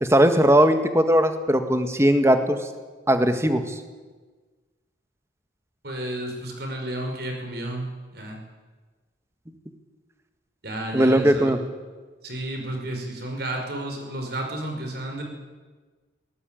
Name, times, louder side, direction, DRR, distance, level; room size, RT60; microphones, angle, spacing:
voice 1, 0.0-2.6 3.1-3.7 10.9-11.6, equal, 15° right, 8 dB, 1.7 m, -19 dB
voice 2, 5.8-8.4 10.6-11.5 12.2-15.2, right 1 dB, 55° right, 3 dB, 5.7 m, -32 dB
22.0 x 18.5 x 9.2 m, 1.4 s
head